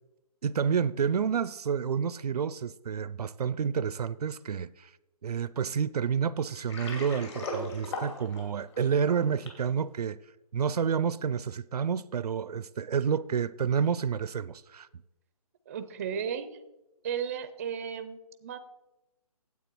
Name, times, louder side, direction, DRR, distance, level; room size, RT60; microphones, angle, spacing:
voice 1, 0.4-4.9 5.2-10.2 10.5-14.9, right 7 dB, 80° right, 0.4 m, -29 dB
Water, 6.5-9.7, left 2 dB, 45° left, 2.6 m, -38 dB
voice 2, 15.7-16.6 17.0-18.6, right 7 dB, 25° right, 0.4 m, -34 dB
9.4 x 8.1 x 4.5 m
hypercardioid pair, 155°, 20 cm